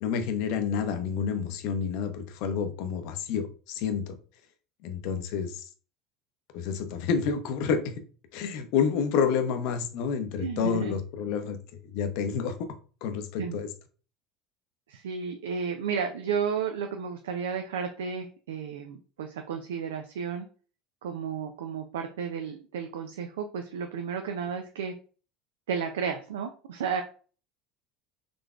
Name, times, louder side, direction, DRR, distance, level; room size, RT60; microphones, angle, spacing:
voice 1, 0.0-4.1 4.8-5.7 6.5-8.0 8.3-11.6 11.9-12.6 13.0-13.7, left 6 dB, 65° left, 0.6 m, -29 dB
voice 2, 10.4-11.0 13.4-13.6 14.9-20.5 21.0-24.9 25.7-27.0, right 6 dB, 85° right, 0.4 m, -32 dB
3.8 x 3.3 x 2.4 m
hypercardioid pair, 80°, 0 cm